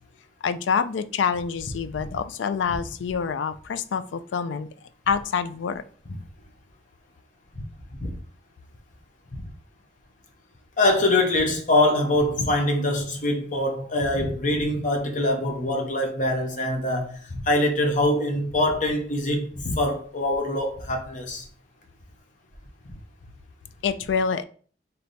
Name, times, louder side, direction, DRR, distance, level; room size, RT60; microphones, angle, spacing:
voice 1, 0.4-4.7 5.1-5.8 23.8-24.4, left 6 dB, 90° left, 0.4 m, -26 dB
voice 2, 10.8-21.4, left 1 dB, 45° left, 0.8 m, -24 dB
3.4 x 2.8 x 3.9 m
head